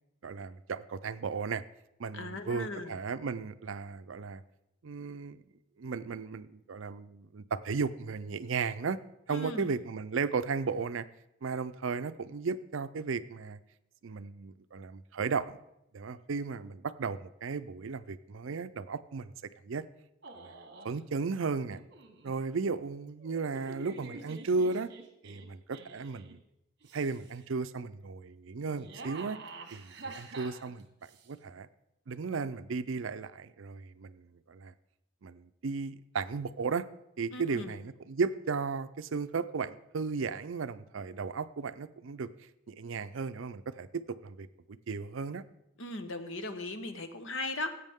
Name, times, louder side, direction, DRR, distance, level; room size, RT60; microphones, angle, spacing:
voice 1, 0.2-1.6 2.0-4.4 4.8-5.4 5.8-9.0 9.3-11.1 11.4-13.6 14.0-15.6 15.9-19.3 19.6-19.8 20.4-20.5 20.8-21.8 22.2-24.9 25.2-26.4 26.9-29.4 29.7-31.7 32.1-34.7 35.2-36.8 37.2-42.3 42.7-45.5, right 4 dB, 70° right, 13 dB, 0.5 m, -35 dB
voice 2, 2.1-3.0 9.3-9.7 37.3-37.8 45.8-47.7, left 2 dB, 70° left, 9 dB, 1.0 m, -38 dB
sound 1, 20.2-21.0 21.7-22.3 23.2-26.4 26.8-27.4 28.6-31.3, right 3 dB, 50° right, 1.3 m, -48 dB
16.0 x 8.3 x 3.6 m, 0.84 s
head